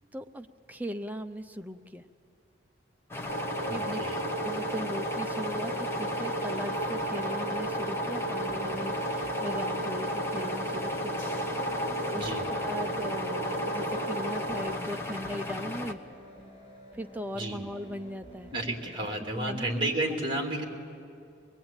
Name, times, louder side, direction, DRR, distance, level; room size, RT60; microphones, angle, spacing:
voice 1, 0.1-2.0 3.7-4.0 4.4-11.2 12.1-16.0 16.9-18.5 18.9-19.1 19.3-19.7, equal, 10° right, 7 dB, 0.6 m, -38 dB
sound 1, 3.1-15.9, left 2 dB, 15° left, 1.1 m, -37 dB
sound 2, 3.3-14.8, right 1 dB, 50° left, 2.5 m, -33 dB
voice 2, 3.7-4.2 12.2-12.4 17.3-17.6 18.5-20.6, right 1 dB, 30° right, 1 dB, 3.0 m, -32 dB
sound 3, 7.0-19.0, right 1 dB, 35° left, 5.2 m, -51 dB
24.5 x 21.0 x 8.9 m, 2.4 s
head